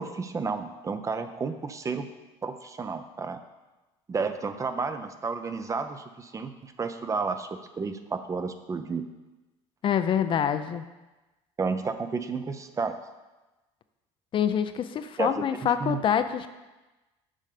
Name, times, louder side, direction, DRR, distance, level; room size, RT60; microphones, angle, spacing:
voice 1, 0.0-2.1 2.4-3.4 4.1-9.0 11.6-12.9 15.2-16.0, right 4 dB, 25° right, 9 dB, 0.6 m, -32 dB
voice 2, 9.8-10.8 14.3-16.5, left 8 dB, 45° left, 10 dB, 0.5 m, -26 dB
7.5 x 5.5 x 5.0 m, 1.1 s
supercardioid pair, 95°, 12 cm